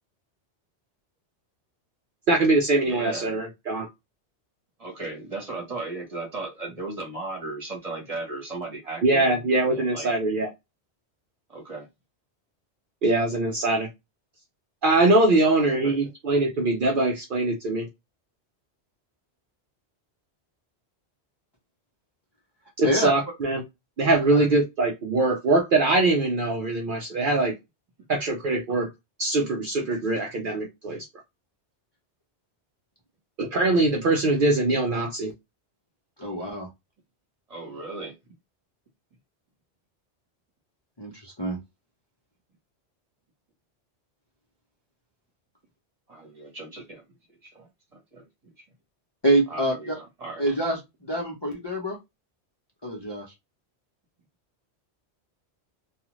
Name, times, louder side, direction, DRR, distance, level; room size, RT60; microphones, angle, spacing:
voice 1, 2.3-3.9 9.0-10.5 13.0-13.9 14.8-17.9 22.8-23.6 24.0-27.5 28.1-28.9 29.2-31.0 33.4-35.3, right 2 dB, 55° right, 0.7 m, -22 dB
voice 2, 2.8-3.4 4.8-10.1 11.5-11.9 15.2-16.1 37.5-38.2 46.1-47.0 47.4-47.7 48.1-48.2 49.5-50.4, right 2 dB, 35° right, 1.1 m, -36 dB
voice 3, 36.2-36.7 41.0-41.6 49.2-50.0 50.4-52.0 52.8-53.2, right 1 dB, 25° left, 0.7 m, -26 dB
2.4 x 2.4 x 3.0 m
omnidirectional pair, 1.1 m